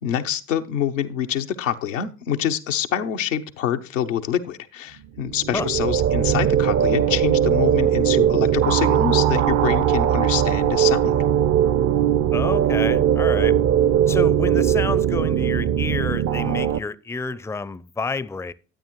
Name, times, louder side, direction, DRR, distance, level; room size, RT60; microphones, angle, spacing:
voice 1, 0.0-11.2, left 9 dB, 90° left, 0.8 m, -26 dB
sound 1, 5.2-16.8, right 10 dB, 45° right, 0.7 m, -20 dB
voice 2, 12.3-13.6 14.1-18.5, left 4 dB, 5° left, 0.5 m, -29 dB
12.5 x 8.7 x 3.0 m
hypercardioid pair, 55°, 37 cm